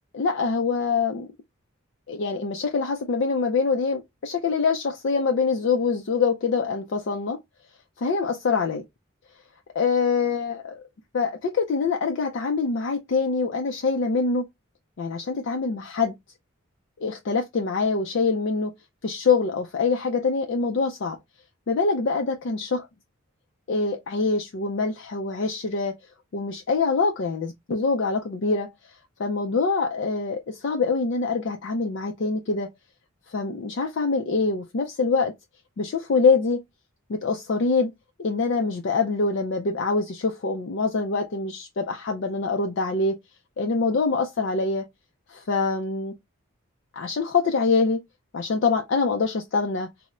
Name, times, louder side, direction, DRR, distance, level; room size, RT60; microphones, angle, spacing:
voice 1, 0.1-1.3 2.1-7.4 8.0-8.8 9.8-10.8 11.1-14.4 15.0-16.1 17.0-18.7 19.0-21.2 21.7-22.8 23.7-25.9 26.3-28.7 29.2-32.7 33.3-35.3 35.8-36.6 37.1-37.9 38.2-43.2 43.6-44.8 45.3-46.1 46.9-48.0 48.3-49.9, left 4 dB, 55° left, 0.4 m, -24 dB
4.1 x 2.0 x 2.3 m
head